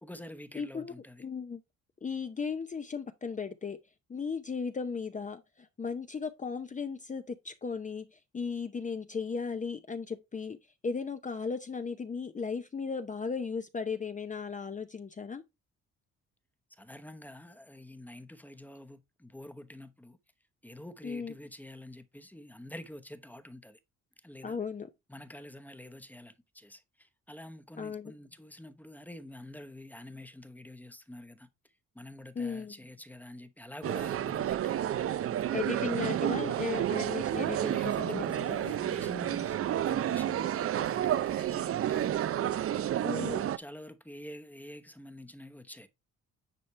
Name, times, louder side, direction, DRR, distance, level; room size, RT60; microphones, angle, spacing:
voice 1, 0.0-1.2 16.7-20.2 20.6-23.8 24.2-24.6 25.1-31.5 31.9-35.0 35.3-35.5 37.3-42.1 42.7-45.9, left 1 dB, 5° left, 0.9 m, -47 dB
voice 2, 0.6-0.9 1.2-1.6 2.0-3.8 4.1-10.6 10.8-15.4 21.0-21.3 24.4-24.9 27.8-28.1 32.4-32.7 35.5-38.2 38.5-38.7 43.1-43.4, left 5 dB, 25° left, 0.6 m, -36 dB
sound 1, 33.8-43.6, right 11 dB, 50° right, 0.5 m, -30 dB
9.8 x 4.3 x 3.2 m
cardioid pair, 90°, 30 cm